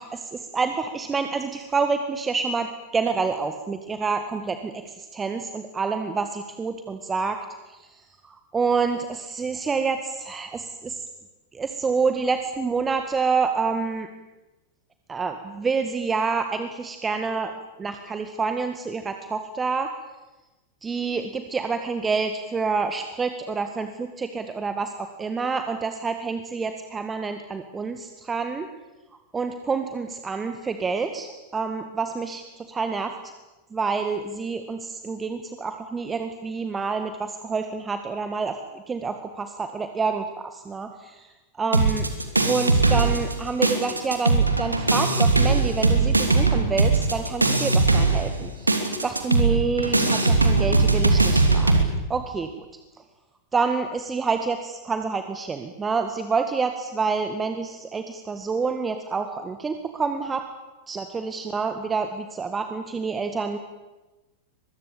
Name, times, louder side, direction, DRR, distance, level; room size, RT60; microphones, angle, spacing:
voice 1, 0.0-7.4 7.7-11.0 11.5-14.1 15.1-17.5 17.8-19.9 20.8-28.7 29.3-33.1 33.7-38.6 38.9-41.3 41.6-42.1 42.4-52.6 53.5-60.5 60.9-63.6, right 4 dB, 15° right, 7 dB, 1.9 m, -28 dB
sound 1, 41.7-43.4 43.6-51.8, right 3 dB, 80° right, 2.9 m, -20 dB
24.0 x 22.5 x 8.8 m, 1.1 s
figure-of-eight pair, 90°, 0 cm